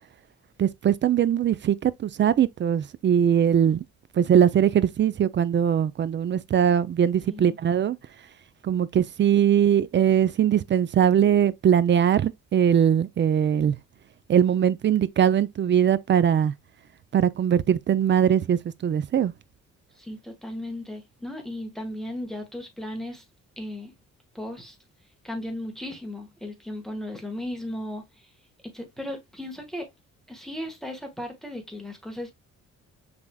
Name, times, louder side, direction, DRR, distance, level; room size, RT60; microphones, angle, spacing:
voice 1, 0.6-3.8 4.2-8.0 8.6-13.8 14.3-16.5 17.1-19.3, right 9 dB, 40° right, 0.4 m, -21 dB
voice 2, 20.0-23.2 23.6-23.9 24.3-24.8 25.2-28.3 28.7-29.9 30.3-32.3, left 1 dB, ahead, 1.4 m, -36 dB
6.0 x 3.4 x 2.2 m
cardioid pair, 90°, 30 cm